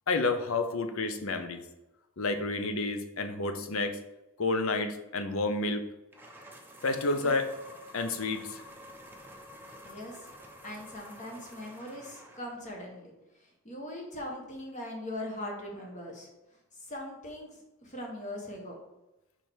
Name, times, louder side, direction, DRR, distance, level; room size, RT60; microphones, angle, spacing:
voice 1, 0.1-1.6 2.2-4.0 4.4-5.8 6.8-7.5 7.9-8.6, left 3 dB, 65° left, 8 dB, 0.7 m, -30 dB
sound 1, 6.1-12.7, equal, 10° right, 0.7 m, -50 dB
voice 2, 9.8-10.3 10.6-13.1 13.4-16.3 16.7-18.8, left 1 dB, 35° left, 0 dB, 1.2 m, -41 dB
4.9 x 4.4 x 4.5 m, 0.96 s
head